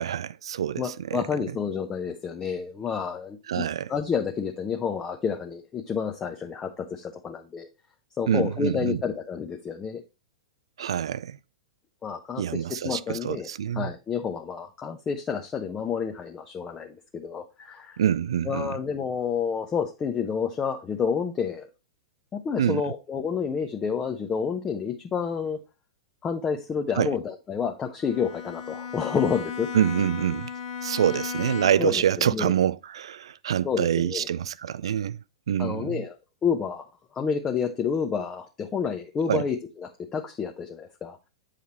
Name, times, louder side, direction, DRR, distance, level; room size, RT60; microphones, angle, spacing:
voice 1, 0.0-1.6 3.5-3.9 8.3-9.0 10.8-11.4 12.4-13.9 18.0-18.8 22.6-22.8 27.0-27.1 29.7-30.5 30.8-35.2 35.5-36.0 39.3-39.5, right 9 dB, 65° right, 0.3 m, -26 dB
voice 2, 0.8-7.7 8.2-10.0 12.0-13.5 13.7-18.0 18.5-21.7 22.3-25.6 26.2-29.7 31.8-32.5 33.6-34.3 35.6-36.1 36.4-36.9 37.1-39.6 39.8-41.2, left 6 dB, 20° left, 0.8 m, -29 dB
Bowed string instrument, 28.0-32.1, left 7 dB, 50° left, 1.3 m, -35 dB
7.9 x 5.0 x 2.9 m
figure-of-eight pair, 100°, 3 cm